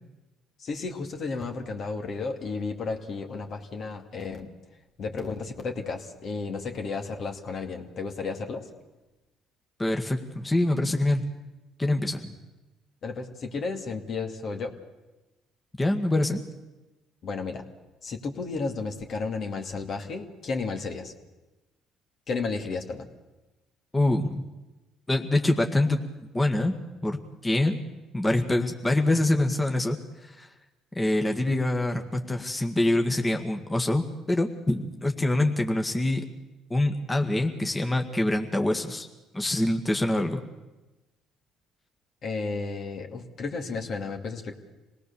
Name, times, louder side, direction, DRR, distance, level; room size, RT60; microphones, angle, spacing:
voice 1, 0.6-4.5 5.0-8.7 13.0-14.7 17.2-17.6 18.0-21.1 22.3-23.1 42.2-44.5, left 4 dB, 55° left, 4 dB, 2.5 m, -33 dB
voice 2, 9.8-11.2 11.8-12.4 15.8-16.4 23.9-24.5 25.1-26.0 26.3-26.7 27.0-27.2 27.4-27.8 28.1-30.5 31.0-36.2 36.7-39.1 39.3-40.4, left 1 dB, 15° left, 4 dB, 1.8 m, -25 dB
26.0 x 18.5 x 7.1 m, 1.1 s
supercardioid pair, 70°, 0 cm